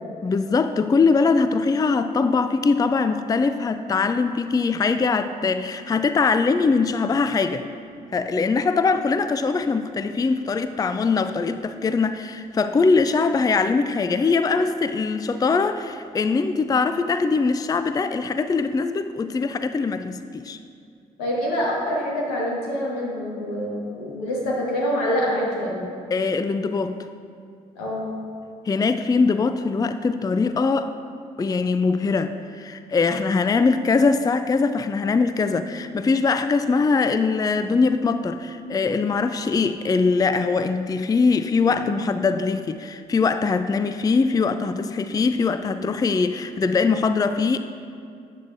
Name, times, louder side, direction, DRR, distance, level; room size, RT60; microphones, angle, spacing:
voice 1, 0.2-7.7 8.1-20.6 26.1-27.0 28.7-30.9 31.4-47.6, left 4 dB, 20° left, 10 dB, 0.4 m, -22 dB
voice 2, 21.2-25.8 27.8-28.1, equal, 85° left, -3 dB, 1.6 m, -26 dB
12.0 x 8.3 x 2.6 m, 2.4 s
hypercardioid pair, 45°, 18 cm